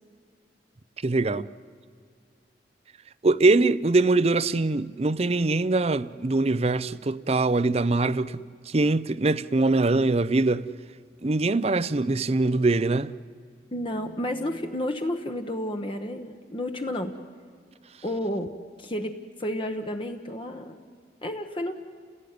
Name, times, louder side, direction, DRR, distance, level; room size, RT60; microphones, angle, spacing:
voice 1, 1.0-1.5 3.2-10.7 11.2-13.1, right 3 dB, 35° right, 0.6 m, -23 dB
voice 2, 13.7-17.2 18.0-18.5 18.8-20.8 21.2-21.7, left 1 dB, 30° left, 1.1 m, -31 dB
30.0 x 16.5 x 9.5 m
head